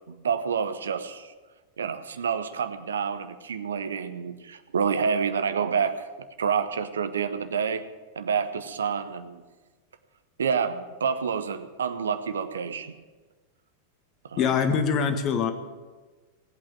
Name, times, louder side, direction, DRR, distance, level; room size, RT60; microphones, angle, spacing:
voice 1, 0.1-1.3 1.8-6.1 6.4-7.9 8.2-9.4 10.4-12.9 14.2-14.4, right 6 dB, 70° right, 11 dB, 0.9 m, -28 dB
voice 2, 14.4-15.5, left 6 dB, 35° left, 7 dB, 1.7 m, -23 dB
17.5 x 8.7 x 8.7 m, 1.3 s
figure-of-eight pair, 90°, 0 cm